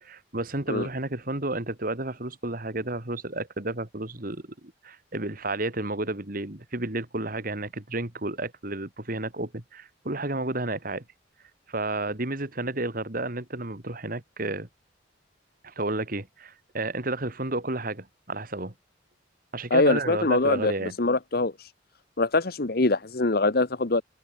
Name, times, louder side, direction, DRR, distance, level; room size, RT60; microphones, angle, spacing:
voice 1, 0.0-11.0 11.7-14.7 15.6-18.7 19.5-20.9, right 2 dB, 50° right, 2.5 m, -31 dB
voice 2, 19.7-20.7 21.0-21.7 22.2-24.0, left 3 dB, 55° left, 1.1 m, -23 dB
open air
head